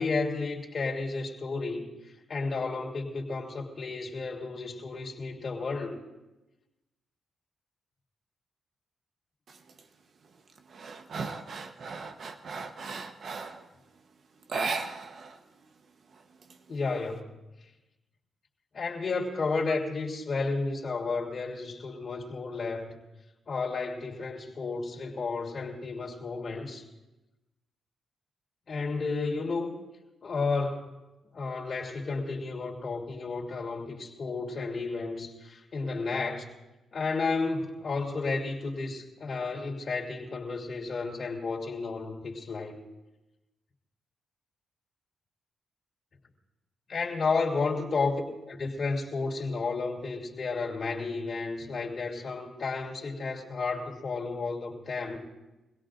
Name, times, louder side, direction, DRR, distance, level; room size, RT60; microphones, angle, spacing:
voice 1, 0.0-1.9 2.3-6.0 16.7-17.3 18.7-22.9 23.5-26.8 28.7-29.8 30.2-31.0 31.3-36.5 36.9-42.8 46.9-55.2, left 4 dB, 55° left, -1 dB, 3.1 m, -32 dB
sound 1, 9.5-9.8 10.2-13.7 14.4-15.4 15.6-15.7 16.1-17.1, right 4 dB, 60° right, 1.0 m, -36 dB
25.0 x 17.0 x 2.6 m, 1.1 s
supercardioid pair, 55°, 0 cm